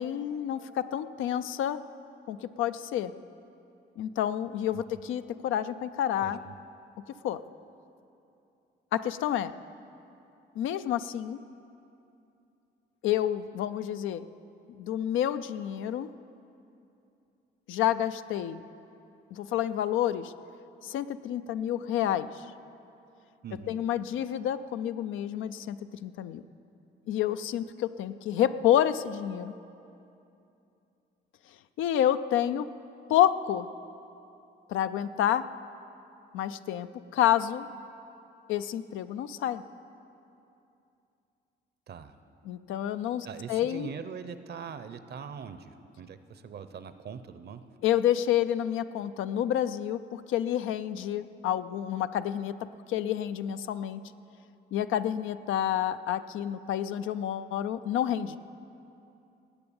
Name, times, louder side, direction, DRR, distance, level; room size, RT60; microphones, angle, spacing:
voice 1, 0.0-1.8 2.3-3.1 4.0-6.4 7.2-7.4 8.9-9.5 10.6-11.4 13.0-14.3 14.7-16.1 17.7-18.6 19.3-20.3 20.8-22.4 23.7-26.4 27.1-29.5 31.8-32.7 33.1-33.7 34.7-35.5 36.3-37.7 38.5-39.6 42.5-43.9 47.8-52.5 52.9-54.0 54.7-58.4, left 11 dB, 85° left, 11 dB, 0.5 m, -29 dB
voice 2, 6.2-6.5 23.4-23.8 41.9-42.1 43.2-47.7, right 6 dB, 55° right, 11 dB, 0.8 m, -42 dB
18.5 x 7.9 x 7.1 m, 2.7 s
cardioid pair, 90°, 20 cm